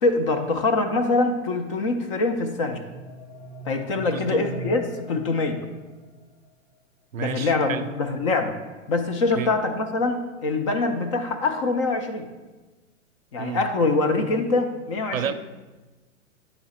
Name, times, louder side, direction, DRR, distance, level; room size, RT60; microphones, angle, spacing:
voice 1, 0.0-2.8 3.7-5.6 7.2-8.6 8.9-12.3 13.3-15.3, left 3 dB, 25° left, 5 dB, 0.4 m, -24 dB
sound 1, 2.6-6.3, right 1 dB, 55° left, 1.6 m, -41 dB
voice 2, 4.1-4.5 7.1-7.9 9.3-9.6 13.4-13.7 15.1-15.3, right 9 dB, 90° right, 10 dB, 0.5 m, -31 dB
8.4 x 3.9 x 4.2 m, 1.2 s
hypercardioid pair, 120°, 40 cm